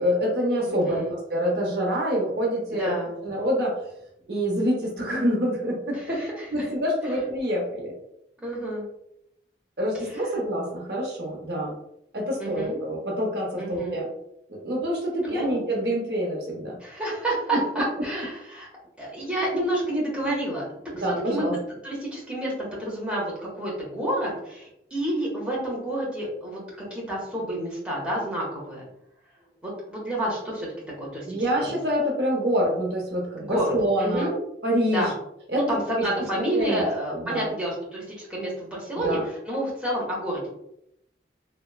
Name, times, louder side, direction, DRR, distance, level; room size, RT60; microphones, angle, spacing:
voice 1, 0.0-3.0 3.2-3.8 4.3-6.2 6.5-7.9 9.8-11.7 12.1-14.1 14.5-16.8 17.5-17.6 21.0-21.5 31.2-34.3 34.6-35.1 35.5-36.0 36.5-37.5 39.0-39.2, equal, 70° right, -1 dB, 0.7 m, -26 dB
voice 2, 0.7-1.1 2.7-3.1 5.9-6.7 8.4-8.8 12.4-12.8 13.6-14.0 15.3-15.6 16.8-18.7 19.0-20.7 21.1-21.5 21.8-28.8 29.6-30.7 31.0-31.4 31.6-31.7 33.4-33.7 34.0-34.3 34.9-35.1 35.5-40.5, right 1 dB, 5° right, -6 dB, 0.8 m, -29 dB
2.9 x 2.1 x 2.3 m, 0.77 s
head